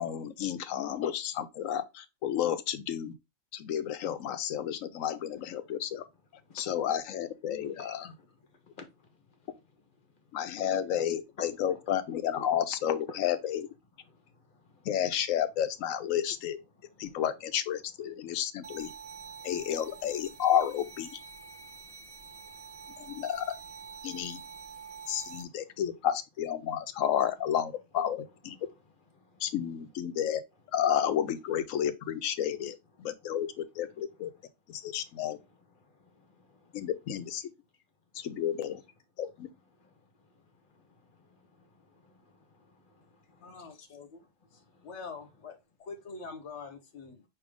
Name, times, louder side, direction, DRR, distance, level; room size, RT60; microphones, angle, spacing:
voice 1, 0.0-3.1 3.5-6.0 6.5-8.1 10.3-13.7 14.8-16.6 17.0-18.9 19.4-21.1 23.0-23.5 24.0-24.4 25.1-28.6 29.4-30.4 30.7-34.3 34.7-35.4 36.7-37.4 38.1-38.8 39.2-39.5, left 10 dB, 85° left, 1.0 m, -31 dB
voice 2, 7.8-8.3 8.6-8.9 11.4-11.5 13.1-13.2 14.1-14.2 14.5-14.9 17.0-17.1 19.1-19.5 21.6-23.2 24.2-24.6 25.0-25.8 29.1-29.4 34.8-34.9 35.8-36.8 39.8-40.0 40.8-43.7 44.5-44.9, left 3 dB, 40° left, 1.2 m, -55 dB
sound 1, 18.6-25.4, right 6 dB, 70° right, 0.3 m, -47 dB
voice 3, 43.4-44.2 44.5-47.2, left 4 dB, 60° left, 1.2 m, -45 dB
4.9 x 3.1 x 3.4 m
omnidirectional pair, 1.4 m